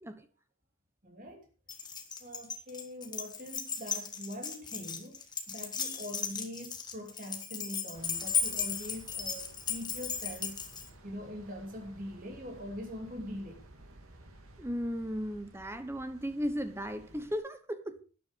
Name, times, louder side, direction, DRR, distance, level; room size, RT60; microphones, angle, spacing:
voice 1, 1.0-1.4 2.2-5.2 5.5-10.6 11.0-13.6, left 1 dB, 40° right, 2.8 m, -43 dB
Keys jangling, 1.7-10.9, left 6 dB, 20° left, 1.5 m, -36 dB
sound 1, 7.9-17.4, right 1 dB, 85° right, 2.6 m, -55 dB
voice 2, 14.6-18.0, equal, 10° right, 1.0 m, -36 dB
12.5 x 10.5 x 5.1 m
head